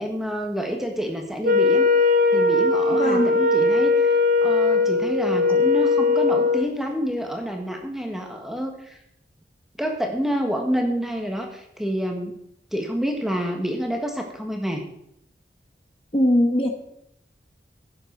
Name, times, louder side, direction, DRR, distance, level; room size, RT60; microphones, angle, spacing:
voice 1, 0.0-1.9 2.3-4.1 4.4-9.0 9.8-12.3 12.7-14.8, equal, ahead, 2 dB, 1.4 m, -28 dB
Wind instrument woodwind instrument, 1.4-6.7, left 3 dB, 50° right, 1.0 m, -19 dB
voice 2, 2.9-3.3 16.1-16.7, left 1 dB, 30° left, 3 dB, 1.1 m, -20 dB
16.0 x 7.6 x 4.7 m, 0.76 s
head